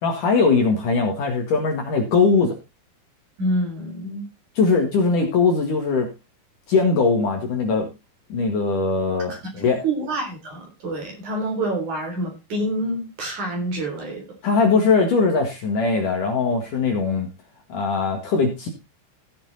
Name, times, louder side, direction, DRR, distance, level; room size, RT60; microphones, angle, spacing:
voice 1, 0.0-2.5 4.6-6.1 6.7-7.9 8.3-9.8 14.4-17.3 17.7-18.7, left 4 dB, 55° left, 3.0 m, -20 dB
voice 2, 3.4-4.3 9.3-14.2, right 1 dB, 45° right, 4.8 m, -27 dB
16.0 x 7.1 x 4.1 m
omnidirectional pair, 5.2 m